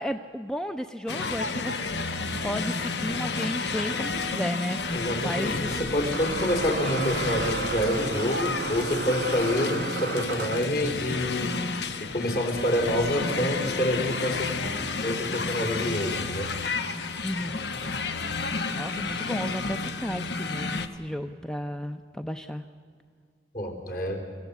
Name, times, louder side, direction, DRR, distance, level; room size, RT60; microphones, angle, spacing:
voice 1, 0.0-5.8 17.2-17.6 18.8-22.7, equal, 5° left, 8 dB, 0.5 m, -34 dB
sound 1, 1.1-20.9, left 4 dB, 70° left, 1.1 m, -31 dB
sound 2, 4.0-4.1 5.9-10.8, right 5 dB, 65° right, 0.5 m, -33 dB
voice 2, 4.9-11.6 12.0-14.5 15.0-16.5 23.5-24.2, left 1 dB, 55° left, 4 dB, 3.7 m, -27 dB
25.0 x 15.5 x 8.2 m, 2.2 s
head